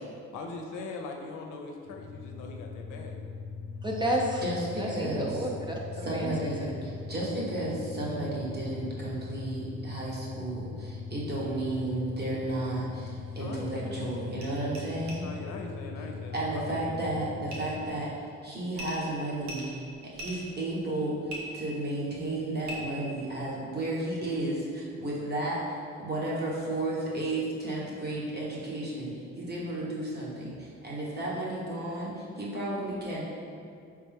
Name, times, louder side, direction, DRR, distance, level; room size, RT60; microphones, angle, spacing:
voice 1, 0.3-3.2 13.4-14.1 15.2-17.2, left 3 dB, 80° left, 2 dB, 0.6 m, -41 dB
sound 1, 1.8-17.9, left 4 dB, 35° left, 0.7 m, -41 dB
voice 2, 3.8-4.4 4.8-6.7, right 1 dB, 15° right, -2 dB, 0.6 m, -31 dB
voice 3, 4.4-5.4 6.0-15.2 16.3-18.1 18.4-19.6 20.0-33.3, right 1 dB, 35° right, -5 dB, 1.2 m, -33 dB
sound 2, 14.1-14.2 14.4-14.5 14.7-14.8 15.1-15.2 17.5-17.8 18.7-19.0 19.4-20.5 21.3-21.4 22.6-22.8, equal, 70° right, 1.1 m, -40 dB
4.3 x 3.4 x 3.5 m, 2.4 s
cardioid pair, 90°, 30 cm